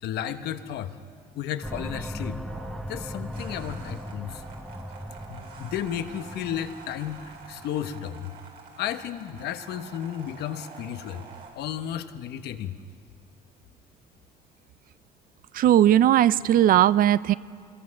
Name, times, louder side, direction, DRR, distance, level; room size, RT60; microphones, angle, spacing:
voice 1, 0.0-1.0 1.4-2.4 2.9-4.4 5.3-8.3 8.8-11.2 11.5-12.7, left 10 dB, 75° left, 9 dB, 1.1 m, -33 dB
sound 1, 1.6-7.9, equal, ahead, 0.9 m, -38 dB
sound 2, 2.5-11.5, right 4 dB, 75° right, 4.1 m, -47 dB
voice 2, 15.5-17.3, right 11 dB, 55° right, 18 dB, 0.5 m, -18 dB
26.5 x 21.5 x 6.4 m, 2.1 s
cardioid pair, 110°, 17 cm